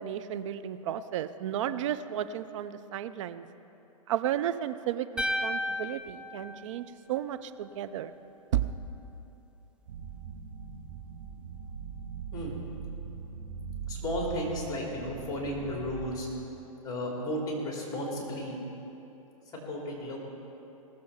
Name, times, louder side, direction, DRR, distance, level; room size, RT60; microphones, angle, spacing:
voice 1, 0.0-3.4 4.1-8.1 8.5-8.7, right 11 dB, 60° right, 11 dB, 0.6 m, -33 dB
sound 1, 5.2-7.4, left 1 dB, 5° right, 0.6 m, -34 dB
sound 2, 9.9-16.1, right 7 dB, 75° right, 2.2 m, -41 dB
voice 2, 13.9-16.4 16.8-18.6 19.5-20.2, equal, 20° left, -3 dB, 3.2 m, -34 dB
19.0 x 7.6 x 5.7 m, 2.9 s
hypercardioid pair, 120°, 18 cm